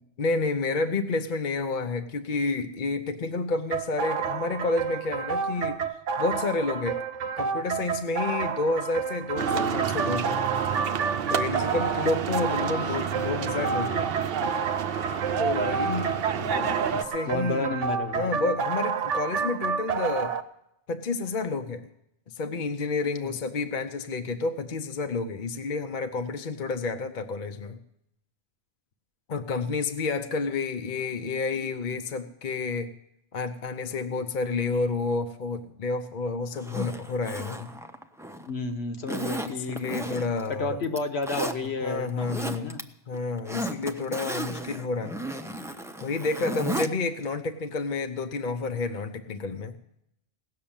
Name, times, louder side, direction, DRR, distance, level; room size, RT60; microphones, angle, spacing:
voice 1, 0.2-5.8 6.2-7.0 7.4-10.4 11.3-14.1 15.4-17.7 18.1-20.3 20.9-21.9 22.4-27.8 29.3-32.9 33.3-37.7 39.4-40.8 41.8-42.8 43.1-45.2 46.0-49.8, left 3 dB, 45° left, 7 dB, 0.8 m, -30 dB
sound 1, 3.7-20.4, right 6 dB, 85° right, 1.1 m, -30 dB
sound 2, 9.4-17.0, right 7 dB, 60° right, 0.8 m, -30 dB
voice 2, 16.3-16.7 17.2-18.3 38.5-39.8 40.5-42.8, left 3 dB, 65° left, 7 dB, 1.3 m, -31 dB
Zipper (clothing), 36.6-38.5 39.1-40.5 40.8-41.6 42.1-42.8 43.1-46.9 47.2-47.3, right 1 dB, 5° right, 0.5 m, -34 dB
17.0 x 6.7 x 8.7 m, 0.80 s
omnidirectional pair, 1.2 m